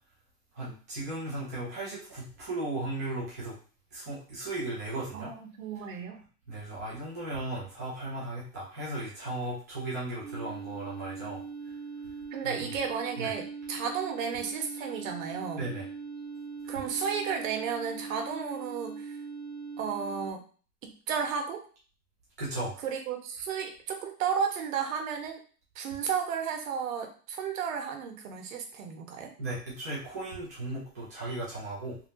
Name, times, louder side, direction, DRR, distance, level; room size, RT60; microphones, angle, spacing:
voice 1, 0.5-3.6 3.9-5.3 6.5-11.4 12.4-12.7 13.2-13.3 15.6-15.9 22.4-22.8 29.4-32.0, right 2 dB, 15° right, -8 dB, 0.3 m, -36 dB
voice 2, 5.1-6.2 12.3-15.7 16.7-19.2 19.8-20.4 20.8-21.6 22.8-25.4 25.8-29.3, right 7 dB, 55° right, 4 dB, 1.0 m, -33 dB
sound 1, 10.2-20.3, right 5 dB, 30° right, 0.7 m, -41 dB
3.2 x 2.1 x 3.8 m, 0.39 s
hypercardioid pair, 150°, 47 cm